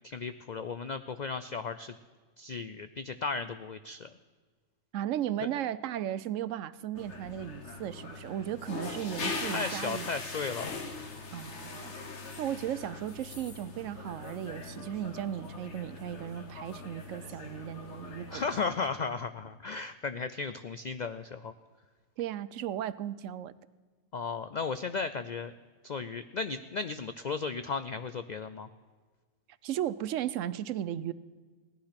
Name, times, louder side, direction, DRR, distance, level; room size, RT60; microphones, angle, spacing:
voice 1, 0.0-1.9 2.4-4.1 5.4-5.5 9.5-10.8 18.3-21.5 24.1-25.5 25.8-28.7, left 4 dB, 80° left, 11 dB, 0.4 m, -35 dB
voice 2, 4.9-10.1 11.3-11.9 12.4-18.4 22.2-23.5 29.6-31.1, right 11 dB, 75° right, 17 dB, 0.9 m, -35 dB
sound 1, 6.9-18.7, left 3 dB, 60° left, 1.7 m, -41 dB
17.0 x 11.5 x 5.8 m, 1.5 s
omnidirectional pair, 1.4 m